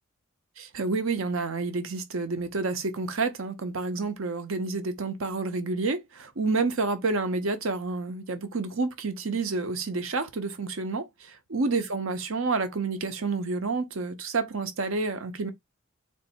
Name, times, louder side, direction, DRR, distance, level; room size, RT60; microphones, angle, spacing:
voice 1, 0.6-15.5, right 3 dB, 65° right, 0.7 m, -29 dB
3.3 x 2.6 x 4.1 m
head